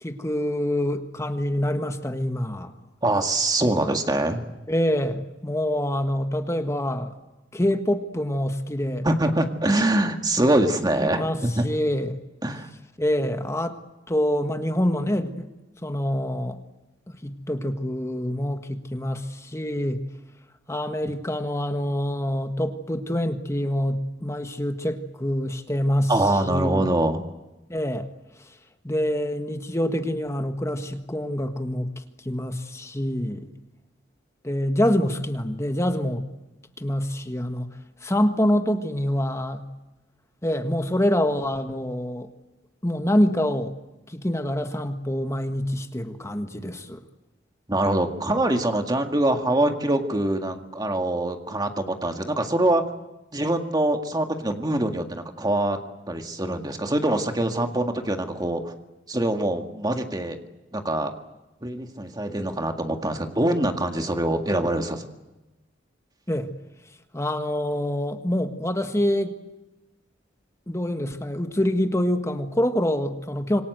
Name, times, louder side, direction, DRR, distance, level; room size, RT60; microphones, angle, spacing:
voice 1, 0.0-2.7 4.7-7.1 7.5-9.1 11.1-12.2 13.0-13.8 14.1-15.5 15.8-16.6 17.1-20.0 20.7-26.1 26.4-26.8 27.7-28.1 28.8-33.5 34.4-36.2 36.8-37.7 38.0-39.7 40.4-42.3 42.8-43.7 44.1-47.0 66.3-66.5 67.1-69.4 70.7-73.6, left 1 dB, 15° left, 7 dB, 1.5 m, -26 dB
voice 2, 3.0-4.4 9.0-11.6 12.4-12.7 26.1-27.2 47.7-52.8 53.3-55.8 56.1-58.7 59.1-60.4 60.7-61.1 61.6-65.1, right 1 dB, 20° right, 5 dB, 1.9 m, -24 dB
26.5 x 23.5 x 8.0 m, 1.0 s
head